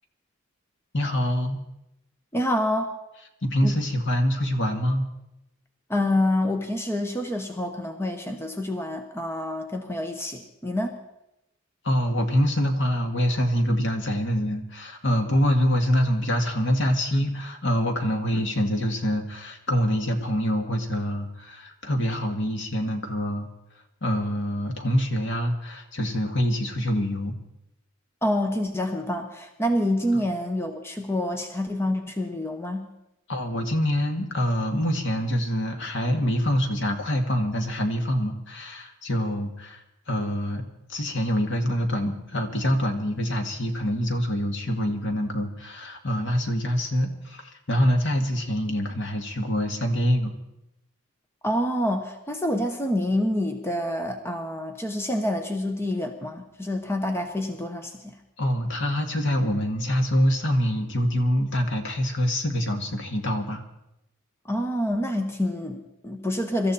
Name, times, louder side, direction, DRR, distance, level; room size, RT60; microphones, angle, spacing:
voice 1, 0.9-1.6 3.5-5.1 11.8-23.5 24.0-27.3 33.3-40.6 40.9-50.3 58.4-63.6, equal, 60° left, 5 dB, 2.0 m, -25 dB
voice 2, 2.3-2.9 3.6-3.7 5.9-11.0 28.2-32.9 51.4-58.2 64.5-66.7, left 1 dB, 10° left, 5 dB, 1.2 m, -27 dB
24.5 x 13.5 x 4.3 m, 0.87 s
head